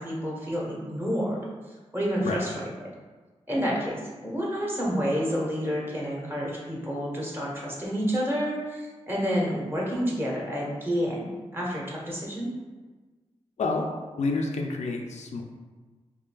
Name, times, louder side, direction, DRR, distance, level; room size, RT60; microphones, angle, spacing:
voice 1, 0.0-1.4 1.9-2.7 3.5-12.5, equal, 20° right, -4 dB, 1.2 m, -29 dB
voice 2, 14.2-15.4, left 3 dB, 80° left, 2 dB, 0.4 m, -28 dB
4.9 x 2.7 x 2.3 m, 1.3 s
cardioid pair, 75°, 12 cm